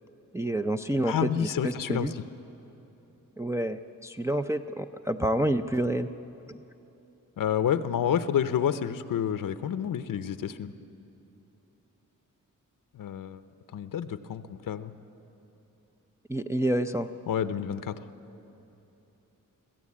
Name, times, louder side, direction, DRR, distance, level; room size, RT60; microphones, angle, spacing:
voice 1, 0.3-2.1 3.4-6.1 6.5-6.6 16.3-17.1, right 1 dB, 10° right, 5 dB, 0.4 m, -28 dB
voice 2, 1.0-2.1 7.4-10.7 12.9-13.4 13.7-14.9 17.3-17.9, left 9 dB, 80° left, 12 dB, 0.7 m, -29 dB
24.0 x 15.5 x 8.5 m, 3.0 s
wide cardioid pair, 120°, 33 cm